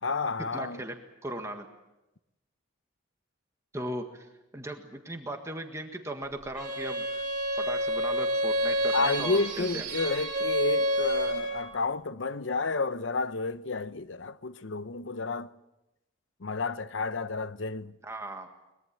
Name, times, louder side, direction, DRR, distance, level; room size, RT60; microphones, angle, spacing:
voice 1, 0.0-0.8 8.9-15.5 16.4-17.9, left 3 dB, 75° left, 0.8 m, -31 dB
voice 2, 0.5-1.7 3.7-4.3 4.5-7.2 7.5-9.8 18.0-18.5, right 1 dB, 15° right, 1.6 m, -37 dB
Bowed string instrument, 6.6-11.7, equal, 45° right, 3.9 m, -29 dB
23.0 x 21.0 x 7.6 m
head